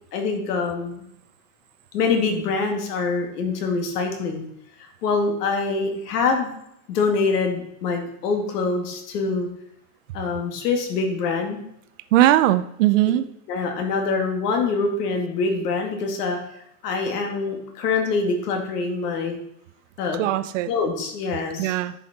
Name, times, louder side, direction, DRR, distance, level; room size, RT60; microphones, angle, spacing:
voice 1, 0.1-1.1 1.9-4.4 4.8-6.5 6.9-9.5 10.1-11.6 13.5-16.4 16.8-19.4 20.0-20.2 20.7-21.7, left 4 dB, 70° left, 3 dB, 2.4 m, -25 dB
voice 2, 12.1-13.3 20.1-20.7 21.6-21.9, right 14 dB, 50° right, 12 dB, 0.6 m, -19 dB
10.0 x 6.3 x 4.3 m, 0.77 s
supercardioid pair, 165°, 49 cm